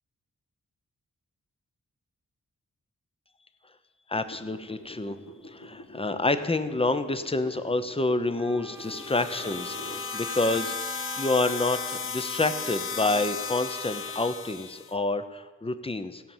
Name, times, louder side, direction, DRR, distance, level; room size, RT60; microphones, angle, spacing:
voice 1, 4.1-5.2 5.5-10.7 11.1-16.2, left 2 dB, 20° left, 10 dB, 0.8 m, -28 dB
sound 1, 4.2-10.1 10.6-10.7, left 1 dB, 65° left, 1.6 m, -46 dB
Wind instrument woodwind instrument, 8.4-14.3, right 3 dB, 10° right, 0.6 m, -44 dB
sound 2, 8.8-14.9, left 6 dB, 45° left, 0.6 m, -35 dB
15.5 x 5.5 x 7.3 m, 1.3 s
cardioid pair, 60°, 29 cm